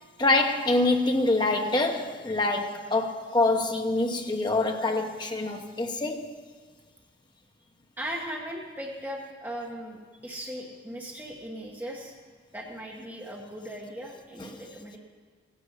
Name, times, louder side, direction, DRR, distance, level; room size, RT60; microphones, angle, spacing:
voice 1, 0.2-6.3 14.4-14.5, left 2 dB, 25° left, 0.9 m, -25 dB
voice 2, 8.0-12.1 12.5-15.0, equal, 10° right, 1.2 m, -38 dB
16.0 x 10.0 x 5.6 m
head